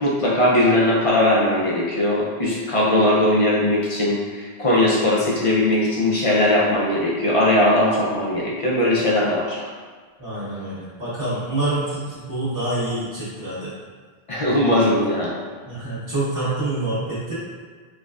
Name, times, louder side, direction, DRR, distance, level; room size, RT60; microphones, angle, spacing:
voice 1, 0.0-9.7 14.3-15.3, left 1 dB, 45° left, -5 dB, 0.5 m, -19 dB
voice 2, 10.2-13.7 15.6-17.3, right 2 dB, 35° right, -13 dB, 1.5 m, -26 dB
4.3 x 2.3 x 2.4 m, 1.5 s
omnidirectional pair, 1.1 m